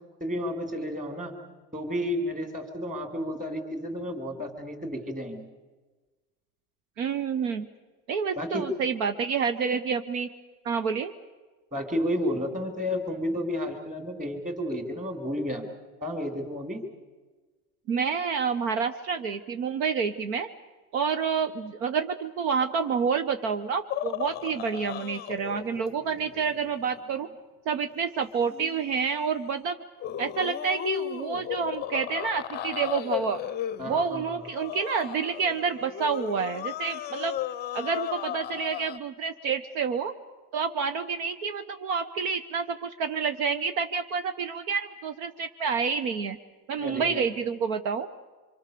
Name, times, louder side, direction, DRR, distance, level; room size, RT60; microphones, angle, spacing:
voice 1, 0.2-1.3 1.7-5.5 8.4-8.7 11.7-15.7 16.0-16.8 33.8-34.3 46.8-47.2, equal, 15° right, 5 dB, 3.8 m, -31 dB
voice 2, 7.0-7.7 8.1-10.3 10.6-11.1 17.9-20.5 20.9-27.3 27.7-29.8 30.2-33.4 33.9-37.4 37.7-40.1 40.5-46.4 46.7-48.1, right 6 dB, 60° right, 9 dB, 1.3 m, -28 dB
sound 1, 23.9-27.4 28.5-28.9 30.0-39.0, left 11 dB, 20° left, 0.7 m, -35 dB
26.0 x 25.5 x 6.9 m, 1.3 s
supercardioid pair, 145°, 47 cm